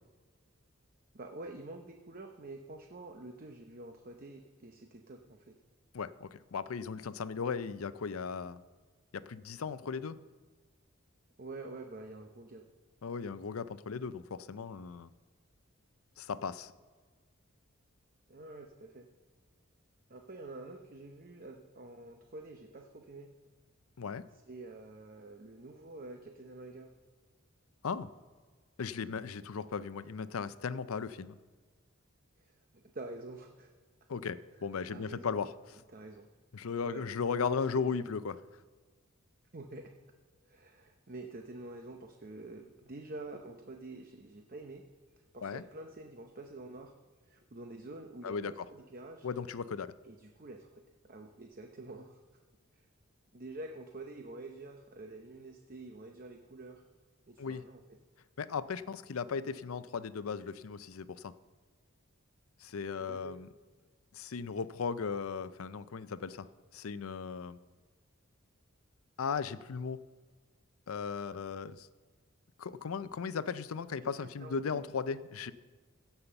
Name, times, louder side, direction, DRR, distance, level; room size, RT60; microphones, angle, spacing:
voice 1, 1.1-5.6 11.4-12.7 18.3-19.1 20.1-23.3 24.5-26.9 32.4-33.7 34.6-35.4 35.9-36.3 36.9-37.1 37.5-38.0 39.5-39.9 40.5-44.8 45.3-46.9 47.3-49.3 50.0-52.2 52.7-52.8 53.3-56.8 57.3-58.0 63.0-63.4 74.0-74.8, right 2 dB, 40° right, 4 dB, 0.8 m, -47 dB
voice 2, 5.9-8.6 9.1-10.2 13.0-15.1 16.2-16.7 24.0-24.2 27.8-28.1 28.8-31.4 34.1-35.5 36.5-38.4 45.4-45.6 48.2-48.5 49.2-49.9 57.4-57.6 58.4-61.3 62.6-63.5 64.1-66.5 66.7-67.6 69.2-70.0 70.9-71.9 72.6-75.5, left 5 dB, 85° left, 15 dB, 0.5 m, -36 dB
16.5 x 5.7 x 6.9 m, 1.4 s
head